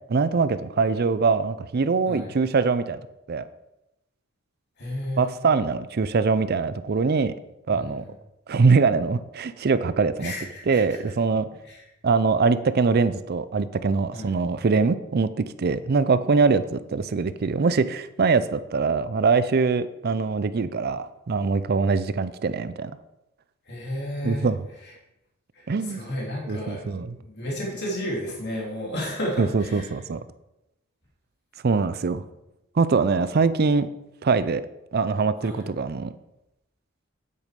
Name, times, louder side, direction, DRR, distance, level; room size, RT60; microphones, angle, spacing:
voice 1, 0.1-3.0 3.3-3.5 5.2-7.3 7.7-8.0 8.5-10.3 10.7-11.5 12.0-15.3 15.6-22.9 24.2-24.6 25.7-26.0 26.5-27.2 29.4-30.2 31.6-32.2 32.8-33.9 34.2-34.6 34.9-36.1, right 4 dB, 45° right, 14 dB, 0.4 m, -23 dB
voice 2, 4.8-5.3 7.7-8.1 10.2-11.0 11.6-11.8 14.1-14.3 23.7-24.5 24.8-24.9 25.5-29.9 35.4-35.6, equal, 50° left, -3 dB, 3.2 m, -32 dB
9.3 x 8.4 x 5.2 m, 0.91 s
head